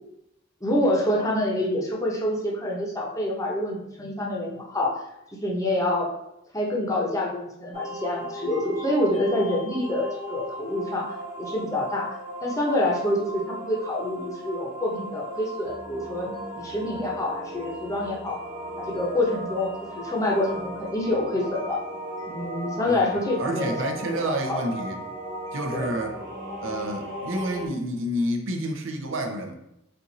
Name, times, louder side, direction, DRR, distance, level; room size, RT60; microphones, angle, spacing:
voice 1, 0.6-4.9 5.4-6.1 6.5-11.1 11.4-12.1 12.4-18.4 18.8-21.8 22.3-23.8 24.1-24.6 25.7-25.9, left 1 dB, 15° left, -2 dB, 0.8 m, -27 dB
sound 1, 7.7-27.7, right 1 dB, 20° right, 1.4 m, -36 dB
voice 2, 22.8-25.0 25.5-26.2 26.6-29.6, right 1 dB, 70° right, 3 dB, 0.7 m, -29 dB
4.4 x 2.5 x 3.9 m, 0.82 s
head